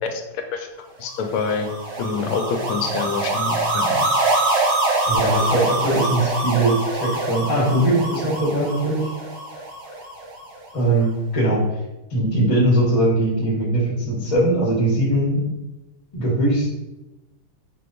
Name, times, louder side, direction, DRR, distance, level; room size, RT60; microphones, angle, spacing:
voice 1, 0.0-0.7 1.0-1.7 2.0-4.1, left 5 dB, 85° left, 5 dB, 1.5 m, -26 dB
sound 1, 1.2-10.5, right 2 dB, 60° right, 0.6 m, -24 dB
voice 2, 5.1-9.1 10.7-11.6 12.1-15.5 16.1-16.7, right 1 dB, 25° left, -4 dB, 0.7 m, -20 dB
4.7 x 2.3 x 3.9 m, 1.0 s
omnidirectional pair, 2.3 m